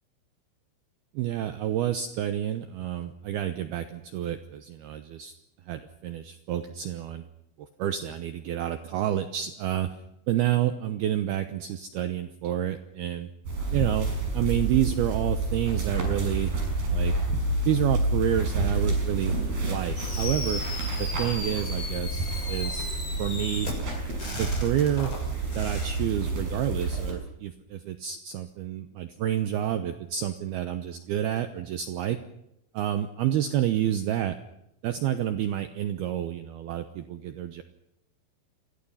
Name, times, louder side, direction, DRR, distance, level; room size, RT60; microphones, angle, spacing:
voice 1, 1.1-5.4 5.7-7.3 7.8-9.9 10.3-13.3 13.7-16.5 16.9-17.1 17.7-19.4 19.6-20.6 21.0-22.9 23.2-23.7 24.2-25.1 25.5-32.2 32.7-34.4 34.8-37.6, right 11 dB, 75° right, 9 dB, 2.5 m, -29 dB
sound 1, 13.5-27.1, right 2 dB, 50° right, 8.4 m, -29 dB
Fireworks, 20.0-26.0, left 2 dB, 25° left, 7.4 m, -36 dB
29.5 x 23.5 x 5.7 m, 0.82 s
omnidirectional pair, 5.5 m